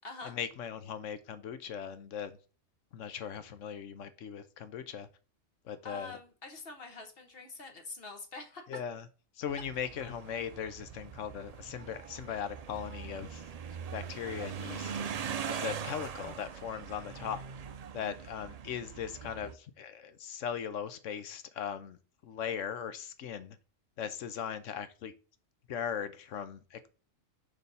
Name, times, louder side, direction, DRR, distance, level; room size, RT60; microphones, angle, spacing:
voice 1, 0.2-2.4 2.9-5.1 5.6-6.2 8.7-9.0 9.4-13.4 13.9-15.1 15.4-17.4 17.9-22.0 22.2-23.6 24.0-25.1 25.7-26.9, left 8 dB, 70° left, 12 dB, 1.1 m, -39 dB
voice 2, 5.8-8.6 15.5-15.8, left 3 dB, 50° left, 5 dB, 1.4 m, -45 dB
sound 1, 9.5-19.5, right 7 dB, 85° right, 0.3 m, -42 dB
6.6 x 3.4 x 5.4 m, 0.36 s
omnidirectional pair, 1.4 m